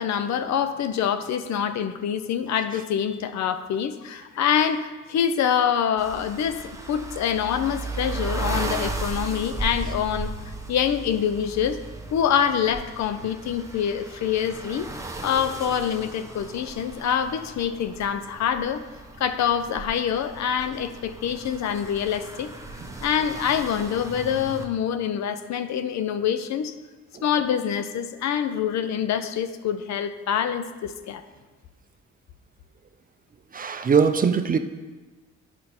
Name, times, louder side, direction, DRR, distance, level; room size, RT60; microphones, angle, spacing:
voice 1, 0.0-10.3 10.7-11.8 12.1-14.9 15.2-18.8 19.2-22.5 23.0-26.7 27.2-31.2 33.8-33.9, left 8 dB, 65° left, 10 dB, 0.6 m, -25 dB
sound 1, 6.0-24.6, right 2 dB, 10° right, 0.9 m, -36 dB
voice 2, 33.5-34.6, right 6 dB, 30° right, 9 dB, 0.5 m, -21 dB
8.7 x 5.3 x 4.3 m, 1.3 s
cardioid pair, 90°, 30 cm